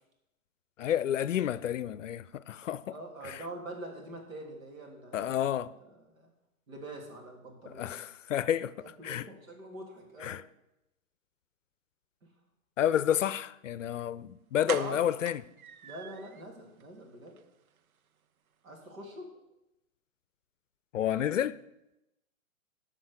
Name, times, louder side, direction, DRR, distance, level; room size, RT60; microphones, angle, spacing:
voice 1, 0.8-2.9 3.2-3.4 5.1-5.7 7.7-8.7 9.0-9.3 10.2-10.4 12.8-15.4 20.9-21.6, left 10 dB, 65° left, 0.6 m, -30 dB
voice 2, 2.9-5.4 5.7-6.3 6.7-8.0 8.8-10.4 12.2-12.3 14.8-15.1 15.8-17.4 18.6-19.3, right 1 dB, 70° right, 3.4 m, -44 dB
sound 1, 14.0-14.1 14.7-16.4 16.8-16.9 17.3-17.4 17.7-17.8, right 8 dB, 90° right, 0.6 m, -41 dB
14.0 x 5.2 x 6.6 m
figure-of-eight pair, 120°, 41 cm